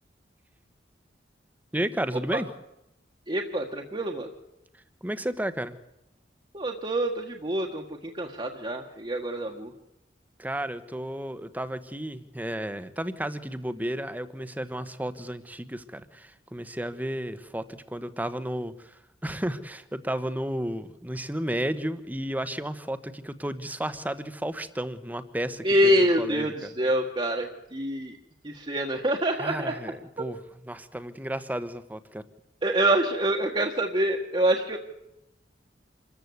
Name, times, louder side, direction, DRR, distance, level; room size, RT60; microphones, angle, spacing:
voice 1, 1.7-2.5 5.0-5.8 10.4-26.7 29.4-30.4 30.7-32.2, right 1 dB, 10° right, 12 dB, 1.2 m, -33 dB
voice 2, 3.3-4.3 6.5-9.7 25.6-28.2 28.4-29.7 30.2-30.3 32.6-34.8, right 1 dB, 30° right, 1 dB, 1.6 m, -26 dB
26.5 x 14.0 x 8.1 m, 0.87 s
head